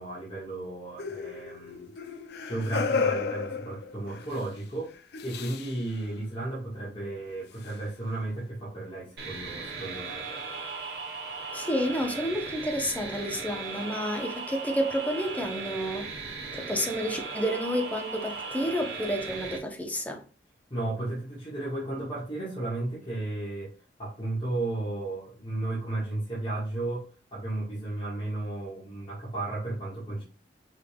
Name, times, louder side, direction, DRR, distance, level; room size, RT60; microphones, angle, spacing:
voice 1, 0.0-1.9 2.4-4.9 5.2-10.2 20.7-23.7 24.0-30.2, right 2 dB, 30° left, 1.5 m, -34 dB
sound 1, 1.0-4.4 5.1-5.8 7.7-7.8, left 5 dB, 60° left, 0.4 m, -32 dB
sound 2, 9.2-19.6, right 4 dB, 60° right, 1.4 m, -37 dB
voice 2, 11.5-16.1 16.5-20.2, equal, 10° left, 0.7 m, -30 dB
5.5 x 3.4 x 2.3 m
head